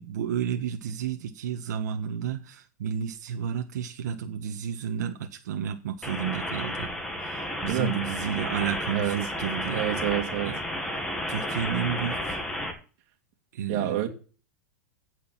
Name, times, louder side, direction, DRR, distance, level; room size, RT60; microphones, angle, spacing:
voice 1, 0.0-6.9 7.2-9.9 10.4-10.6 11.3-12.4 13.5-14.0, right 8 dB, 70° right, 1.4 m, -31 dB
sound 1, 6.0-12.7, left 1 dB, 5° left, 1.7 m, -32 dB
voice 2, 7.7-8.0 8.9-9.2 9.7-10.5 13.7-14.1, right 11 dB, 35° right, 2.6 m, -28 dB
16.5 x 6.7 x 4.2 m
supercardioid pair, 170°, 9 cm